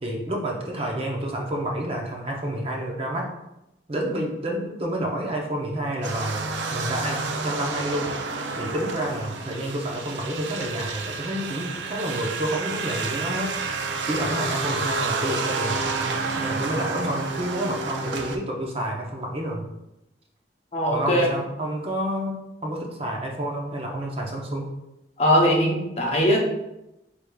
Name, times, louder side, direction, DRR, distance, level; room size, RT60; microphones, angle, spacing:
voice 1, 0.0-3.3 3.9-8.2 8.6-13.5 14.1-19.6 20.9-24.7, right 1 dB, 35° right, 0 dB, 0.6 m, -29 dB
sound 1, 6.0-18.4, right 3 dB, 80° right, 0.4 m, -30 dB
voice 2, 20.7-21.4 25.2-26.4, equal, 35° left, -1 dB, 0.7 m, -20 dB
4.7 x 3.4 x 2.3 m, 0.91 s
head